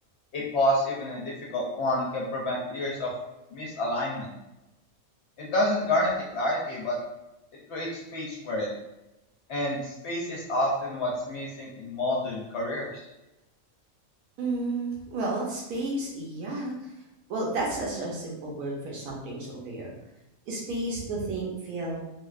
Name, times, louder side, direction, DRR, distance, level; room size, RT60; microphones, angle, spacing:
voice 1, 0.3-3.1 3.5-4.3 5.4-7.0 7.7-8.7 9.5-13.0, left 1 dB, 60° left, -3 dB, 0.8 m, -28 dB
voice 2, 14.4-16.9 17.3-19.9 20.5-22.1, right 2 dB, 85° right, -3 dB, 1.2 m, -32 dB
3.1 x 2.4 x 2.4 m, 0.94 s
omnidirectional pair, 1.5 m